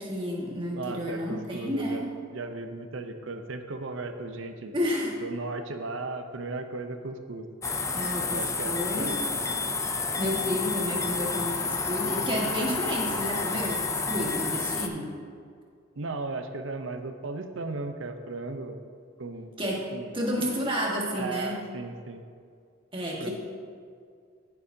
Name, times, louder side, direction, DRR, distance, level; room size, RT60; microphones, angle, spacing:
voice 1, 0.0-2.1 4.7-5.1 7.9-9.1 10.2-15.1 19.6-19.8 20.1-21.6 22.9-23.3, equal, 25° right, -3 dB, 1.6 m, -31 dB
voice 2, 0.7-2.0 2.3-4.7 5.2-7.5 8.3-9.2 15.9-18.8 19.2-19.5 19.9-20.1 21.2-22.2 23.2-23.3, right 3 dB, 75° right, 7 dB, 0.7 m, -36 dB
sound 1, 7.6-14.9, left 4 dB, 15° left, 0.5 m, -30 dB
14.0 x 7.1 x 2.8 m, 2.2 s
head